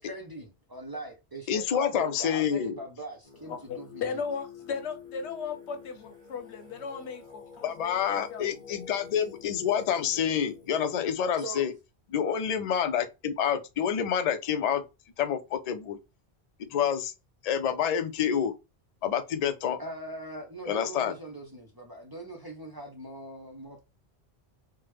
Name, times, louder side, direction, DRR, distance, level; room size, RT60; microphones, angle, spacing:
voice 1, 0.0-4.2 11.4-11.6 19.8-23.8, right 2 dB, 30° right, 0.5 m, -41 dB
voice 2, 1.5-2.8 7.6-11.7 12.1-14.8 15.2-16.0 16.6-17.1 17.4-18.5 19.0-19.8 20.7-21.1, left 8 dB, 55° left, 0.4 m, -28 dB
Singing, 3.2-11.1, left 6 dB, 20° left, 1.5 m, -48 dB
voice 3, 3.4-8.0 8.3-8.4, left 5 dB, 85° left, 1.0 m, -36 dB
3.4 x 2.1 x 3.0 m
omnidirectional pair, 1.1 m